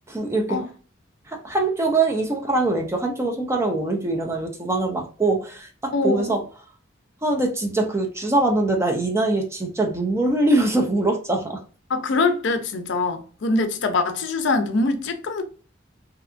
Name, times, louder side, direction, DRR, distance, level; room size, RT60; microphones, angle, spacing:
voice 1, 0.1-0.6 1.3-6.4 7.2-11.6, right 2 dB, 15° right, 0.4 m, -23 dB
voice 2, 5.9-6.4 11.9-15.4, left 3 dB, 65° left, 0.5 m, -23 dB
2.8 x 2.3 x 2.4 m
head